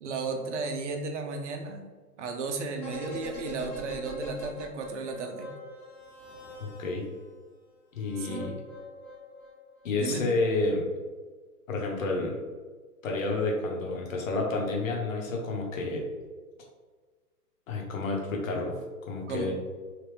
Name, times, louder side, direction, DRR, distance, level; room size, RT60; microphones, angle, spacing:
voice 1, 0.0-1.8 2.2-5.5 8.2-8.5 10.0-10.3 19.3-19.5, right 4 dB, 50° right, 4 dB, 0.6 m, -34 dB
sound 1, 2.8-7.2 8.0-9.8 10.1-10.2, equal, 25° left, 1.0 m, -42 dB
voice 2, 6.6-7.1 7.9-8.6 9.8-10.9 11.7-12.4 13.0-16.1 17.7-19.5, left 2 dB, 60° left, -1 dB, 1.1 m, -30 dB
3.2 x 2.9 x 3.4 m, 1.4 s
hypercardioid pair, 155°, 46 cm